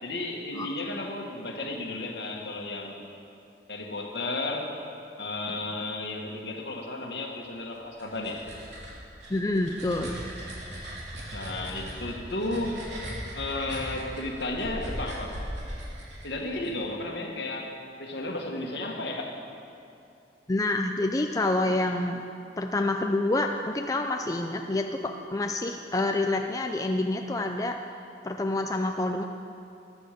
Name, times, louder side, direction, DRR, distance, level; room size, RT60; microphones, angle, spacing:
voice 1, 0.0-3.1 3.7-4.7 5.2-8.4 11.3-12.8 13.3-15.4 16.2-17.7 18.0-19.4, left 2 dB, 70° left, 1 dB, 1.7 m, -33 dB
sound 1, 7.7-16.7, equal, 80° right, 2.9 m, -39 dB
voice 2, 9.3-10.2 20.5-22.2 22.6-27.8 28.2-29.2, left 2 dB, 20° left, 4 dB, 0.4 m, -27 dB
14.5 x 11.5 x 5.1 m, 2.6 s
head